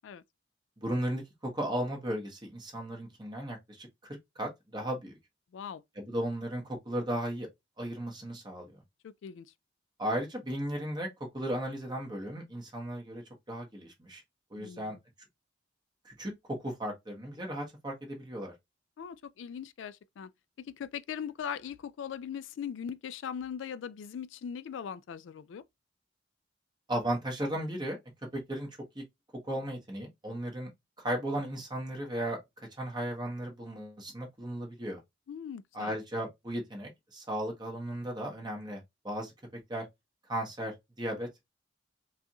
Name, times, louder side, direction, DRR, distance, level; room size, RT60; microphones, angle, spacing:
voice 1, 0.8-5.2 6.0-7.5 7.8-8.7 10.0-11.1 11.3-13.2 13.5-14.2 14.5-15.0 16.0-18.5 26.9-28.0 28.3-28.7 28.9-29.0 29.5-30.7 31.0-32.4 32.8-35.0 35.7-39.3 39.7-39.8 40.3-41.3, right 1 dB, 25° right, 1.3 m, -35 dB
voice 2, 9.0-9.5 14.6-15.0 19.0-20.3 20.8-25.6 35.3-36.0, left 8 dB, 80° left, 0.3 m, -40 dB
4.7 x 2.4 x 2.8 m
head